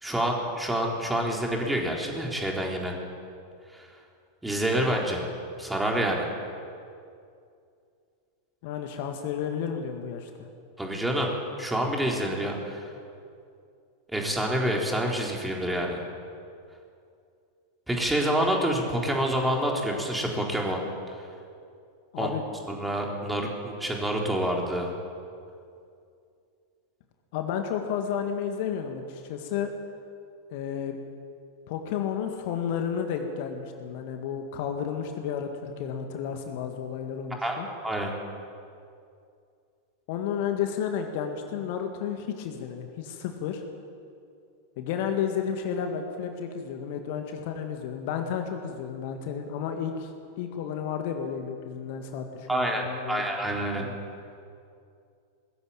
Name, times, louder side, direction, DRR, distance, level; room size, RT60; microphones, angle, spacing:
voice 1, 0.0-2.9 3.7-3.9 4.4-5.2 5.6-6.3 10.8-11.3 11.6-12.9 14.1-16.0 17.9-20.8 22.2-22.3 22.7-24.9 37.4-37.6 37.8-38.1 52.5-53.8, right 1 dB, 5° right, -1 dB, 3.8 m, -27 dB
voice 2, 8.6-10.3 22.1-22.5 27.3-29.8 30.5-31.0 31.7-37.7 40.1-43.6 44.8-50.1 50.4-53.3 53.8-53.9, left 8 dB, 50° left, 5 dB, 2.0 m, -32 dB
21.5 x 14.0 x 8.9 m, 2.4 s
figure-of-eight pair, 90°, 0 cm